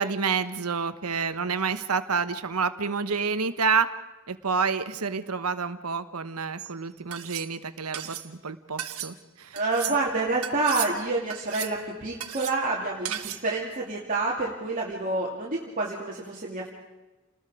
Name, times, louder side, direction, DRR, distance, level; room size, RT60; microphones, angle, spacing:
voice 1, 0.0-3.9 4.3-9.6, right 5 dB, 90° right, 10 dB, 1.2 m, -28 dB
sound 1, 6.6-6.7 7.1-7.5 7.9-8.3 8.8-9.1 9.6-10.0 10.4-10.9 11.3-11.8 12.2-12.6 13.1-13.5, right 11 dB, 70° right, 1.7 m, -35 dB
voice 2, 9.5-16.7, right 3 dB, 35° right, -4 dB, 2.7 m, -28 dB
30.0 x 20.0 x 5.0 m, 1.1 s
head